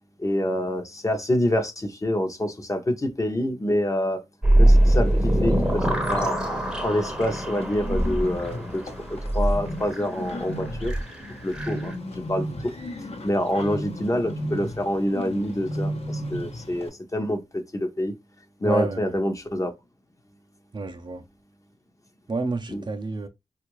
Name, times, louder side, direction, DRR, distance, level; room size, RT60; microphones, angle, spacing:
voice 1, 0.2-4.2 4.6-6.4 6.8-8.8 9.3-10.9 11.4-11.9 12.3-12.5 13.2-15.9 16.3-17.4 17.7-18.1 18.6-19.7 22.7-22.8, left 1 dB, 30° left, 0.8 m, -26 dB
sound 1, 4.4-11.9, right 1 dB, 5° right, 0.8 m, -23 dB
Bird, 4.7-16.9, equal, 60° left, 0.9 m, -35 dB
voice 2, 18.6-19.1 20.7-21.2 22.3-23.3, right 2 dB, 40° right, 0.5 m, -28 dB
3.5 x 2.4 x 3.0 m
wide cardioid pair, 85°, 11 cm